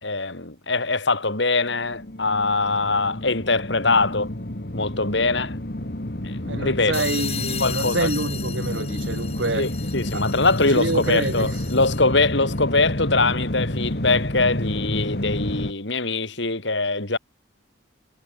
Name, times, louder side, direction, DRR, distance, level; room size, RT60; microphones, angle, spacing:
voice 1, 0.0-4.3 4.7-5.6 6.2-7.0 7.6-8.1 9.5-17.2, left 3 dB, 70° left, 3.7 m, -23 dB
sound 1, 1.7-15.7, left 1 dB, 55° left, 2.0 m, -29 dB
voice 2, 6.4-9.7 10.1-10.2 10.7-11.6, right 2 dB, 75° right, 2.8 m, -27 dB
sound 2, 6.9-12.1, left 9 dB, 30° left, 7.1 m, -36 dB
head